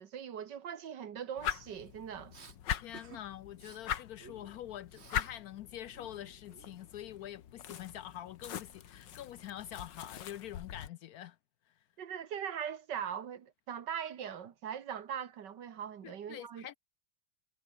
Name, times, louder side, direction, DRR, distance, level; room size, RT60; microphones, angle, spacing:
voice 1, 0.0-2.3 12.0-16.8, right 8 dB, 80° right, 2.0 m, -41 dB
sound 1, 1.4-10.9, left 10 dB, 90° left, 1.9 m, -42 dB
Respiratory sounds, 2.3-2.6 2.9-3.2 3.5-3.8 4.2-5.4 5.6-7.1, right 5 dB, 40° right, 1.9 m, -56 dB
voice 2, 2.7-11.4 16.0-16.8, left 12 dB, 70° left, 0.9 m, -46 dB
omnidirectional pair, 1.9 m